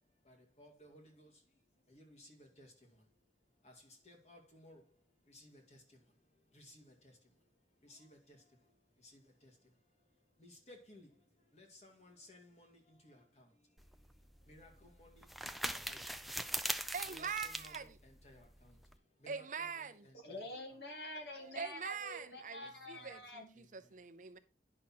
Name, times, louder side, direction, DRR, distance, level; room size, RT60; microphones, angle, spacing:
voice 1, 0.6-1.3 1.9-2.7 4.1-4.8 5.3-5.6 6.6-6.9 7.9-8.0 10.4-11.1 11.5-13.2 14.5-14.7 15.0-15.3 15.9-16.0 17.1-17.9 18.2-18.4 19.2-19.4 19.8-20.4 22.9-23.1, left 1 dB, 35° left, 2.1 m, -58 dB
sound 1, 13.8-19.0, right 1 dB, ahead, 0.3 m, -42 dB
voice 2, 16.9-18.0 19.3-20.1 21.4-24.4, right 6 dB, 45° right, 0.7 m, -43 dB
voice 3, 20.1-23.5, left 1 dB, 65° left, 2.2 m, -47 dB
9.7 x 6.0 x 4.2 m
head